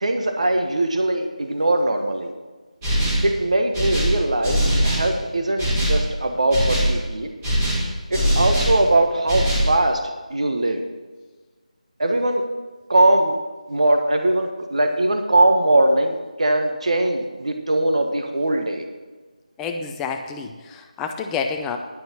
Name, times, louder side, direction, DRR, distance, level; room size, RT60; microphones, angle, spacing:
voice 1, 0.0-2.3 3.2-7.3 8.1-10.0 10.3-10.8 12.0-12.4 12.9-13.3 13.7-18.8, right 1 dB, 55° right, 5 dB, 1.4 m, -20 dB
sound 1, 2.8-3.3 3.7-5.1 5.6-6.0 6.5-7.0 7.4-8.8 9.3-9.7, equal, 15° right, 2.6 m, -21 dB
voice 2, 19.6-21.8, left 5 dB, 5° left, 4 dB, 0.5 m, -29 dB
11.0 x 9.2 x 6.1 m, 1.3 s
figure-of-eight pair, 165°, 4 cm